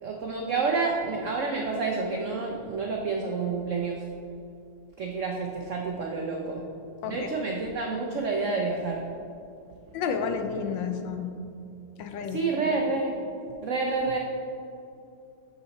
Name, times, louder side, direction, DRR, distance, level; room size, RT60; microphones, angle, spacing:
voice 1, 0.0-4.1 5.0-6.7 7.0-9.1 12.2-13.2 13.6-14.2, right 4 dB, 80° right, 1 dB, 0.6 m, -29 dB
voice 2, 9.9-11.4 12.0-12.4, left 6 dB, 75° left, 7 dB, 1.3 m, -31 dB
6.8 x 5.9 x 4.1 m, 2.6 s
omnidirectional pair, 2.1 m